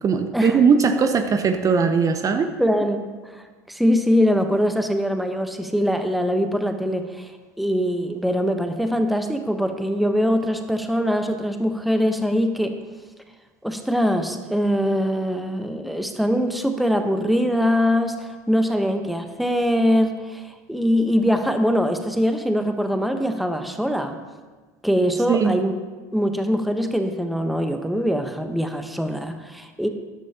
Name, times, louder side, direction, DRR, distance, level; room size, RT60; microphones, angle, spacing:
voice 1, 0.0-2.5 25.3-25.6, right 5 dB, 35° right, 7 dB, 0.8 m, -19 dB
voice 2, 2.6-3.0 3.3-7.3 7.6-12.7 13.6-24.2 24.8-25.7 26.1-29.9, equal, ahead, 6 dB, 1.0 m, -22 dB
13.5 x 11.0 x 2.9 m, 1.4 s
hypercardioid pair, 80°, 10 cm